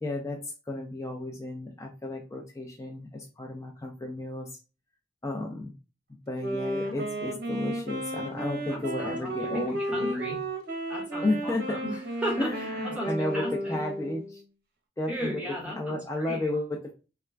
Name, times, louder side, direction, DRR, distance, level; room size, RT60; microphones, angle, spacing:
voice 1, 0.0-4.6 5.2-5.7 6.3-10.2 11.2-11.8 12.4-14.4 15.0-15.4 15.7-16.9, left 2 dB, 15° left, 0 dB, 0.3 m, -33 dB
Wind instrument woodwind instrument, 6.4-14.4, right 1 dB, 55° right, 0.7 m, -33 dB
voice 2, 8.7-10.4 10.9-12.5 12.9-13.8 15.1-16.4, equal, 5° right, -3 dB, 1.0 m, -36 dB
2.3 x 2.2 x 3.2 m, 0.32 s
head